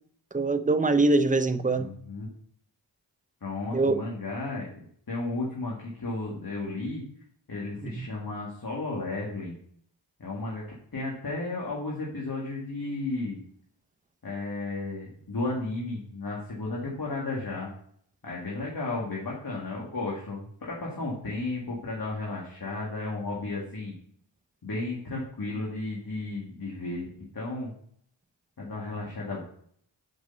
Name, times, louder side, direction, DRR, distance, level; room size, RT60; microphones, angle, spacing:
voice 1, 0.3-1.9 3.7-4.0 7.8-8.1, right 3 dB, 20° right, 0.6 m, -23 dB
voice 2, 1.8-2.3 3.4-7.0 7.5-9.6 10.2-10.6 10.9-13.4 14.2-17.7 18.2-23.9 24.6-27.7 28.6-29.4, left 2 dB, 50° left, 2.0 m, -33 dB
6.3 x 5.1 x 5.4 m
wide cardioid pair, 60°, 45 cm